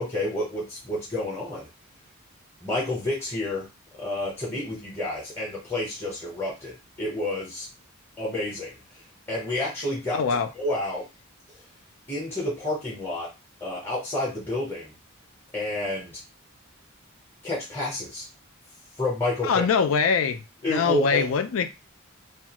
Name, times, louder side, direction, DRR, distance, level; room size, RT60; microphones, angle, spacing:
voice 1, 0.0-1.7 2.6-3.7 3.9-6.7 7.0-7.7 8.2-10.2 10.5-11.0 12.1-13.3 13.6-14.9 15.5-16.2 17.4-18.3 19.0-19.7 20.6-21.3, left 1 dB, 10° left, 0.8 m, -29 dB
voice 2, 10.1-10.5 19.4-20.4 20.7-21.7, left 6 dB, 70° left, 0.4 m, -23 dB
2.4 x 2.3 x 2.9 m
head